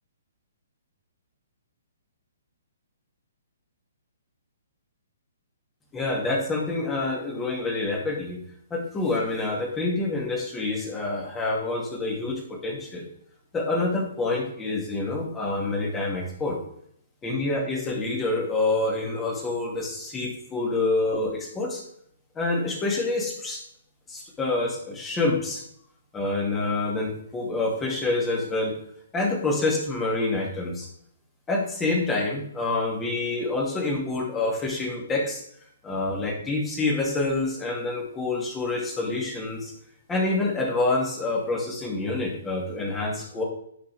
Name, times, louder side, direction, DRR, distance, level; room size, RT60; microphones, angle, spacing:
voice 1, 5.9-8.4 8.7-13.1 13.5-16.6 17.2-21.8 22.4-23.6 24.1-25.6 26.1-28.7 29.1-30.9 31.5-35.4 35.8-39.7 40.1-43.4, left 2 dB, 15° left, -1 dB, 2.3 m, -27 dB
10.0 x 5.7 x 3.5 m, 0.69 s
figure-of-eight pair, 130°, 0 cm